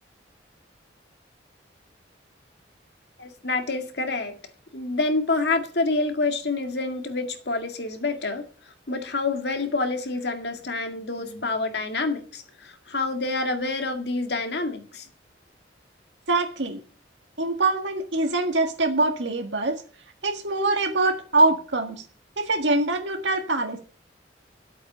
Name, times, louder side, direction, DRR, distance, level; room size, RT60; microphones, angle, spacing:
voice 1, 3.2-4.4 4.7-8.4 8.9-15.1, left 3 dB, 60° left, 6 dB, 2.0 m, -27 dB
voice 2, 16.3-16.8 17.4-19.8 20.2-22.0 22.4-23.8, right 2 dB, 75° right, 4 dB, 1.7 m, -24 dB
11.5 x 8.3 x 6.7 m, 0.41 s
head